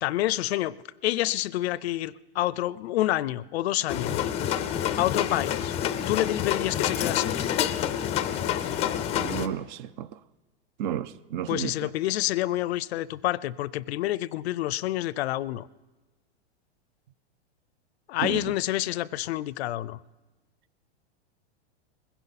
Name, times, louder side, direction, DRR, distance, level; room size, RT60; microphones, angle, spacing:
voice 1, 0.0-0.8 1.0-4.3 5.0-5.7 6.1-7.4 11.5-15.7 18.1-20.0, left 15 dB, 70° left, 0.5 m, -28 dB
sound 1, 3.9-9.5, left 10 dB, 20° left, 0.5 m, -28 dB
voice 2, 9.2-10.2 10.8-11.7 18.2-18.5, right 10 dB, 45° right, 0.5 m, -32 dB
21.0 x 16.0 x 4.1 m
supercardioid pair, 150°, 32 cm